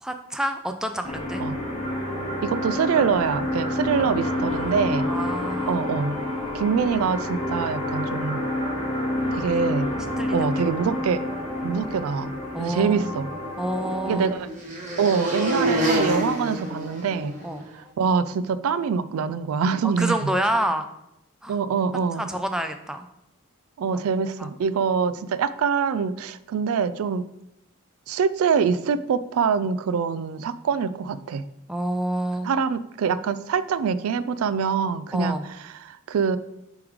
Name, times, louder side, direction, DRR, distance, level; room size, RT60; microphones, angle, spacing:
voice 1, 0.0-1.4 4.4-5.8 10.0-10.5 10.9-11.0 12.5-13.2 13.6-14.4 17.4-17.7 20.0-20.9 21.4-21.6 22.2-23.1 24.4-24.5 31.7-32.5 35.1-35.5, right 1 dB, 5° right, 6 dB, 0.3 m, -28 dB
sound 1, 1.0-14.4, left 1 dB, 25° left, 1.5 m, -29 dB
voice 2, 2.4-5.1 5.7-6.2 6.5-8.4 9.3-9.9 10.3-11.2 11.6-12.3 12.6-13.3 14.1-14.5 15.0-17.3 17.7-20.2 21.5-22.3 23.8-27.2 28.1-31.4 32.4-35.4 35.8-36.4, right 6 dB, 80° right, 15 dB, 0.3 m, -24 dB
sound 2, 13.2-17.6, right 1 dB, 35° right, 1.4 m, -28 dB
7.0 x 3.2 x 4.9 m, 0.84 s
head